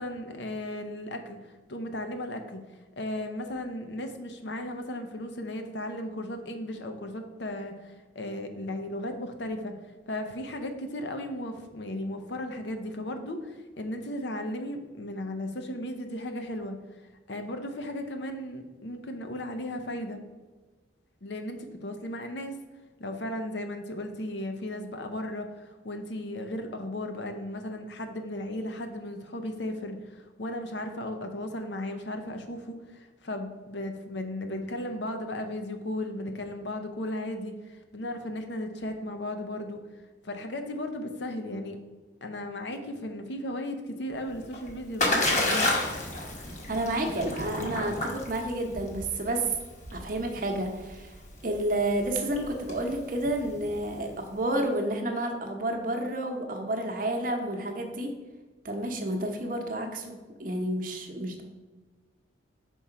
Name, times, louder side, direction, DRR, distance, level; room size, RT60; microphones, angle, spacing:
voice 1, 0.0-2.6 3.0-9.7 10.1-16.8 17.3-20.2 21.2-22.6 23.0-39.8 40.2-41.8 42.2-45.7, left 1 dB, 70° left, 5 dB, 0.7 m, -35 dB
Splash splatter, 44.3-54.1, left 2 dB, 40° left, 1.1 m, -31 dB
voice 2, 46.7-49.5 49.9-51.1 51.4-58.1 58.6-61.4, right 1 dB, 45° right, 3 dB, 0.8 m, -30 dB
5.5 x 4.2 x 4.8 m, 1.3 s
head